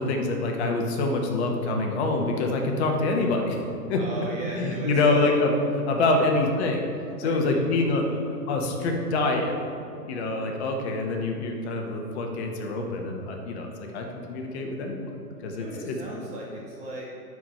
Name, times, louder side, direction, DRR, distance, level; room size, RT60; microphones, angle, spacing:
voice 1, 0.0-3.6 3.9-4.0 4.5-5.5 5.9-6.8 7.2-8.1 8.5-9.6 10.1-15.0 15.4-15.9, left 2 dB, 40° left, 2 dB, 1.4 m, -26 dB
voice 2, 3.9-5.3 6.1-6.3 7.2-7.6 8.0-8.2 10.1-10.4 15.6-17.0, right 1 dB, 15° right, -4 dB, 0.6 m, -37 dB
11.0 x 4.9 x 5.6 m, 2.6 s
hypercardioid pair, 130°, 48 cm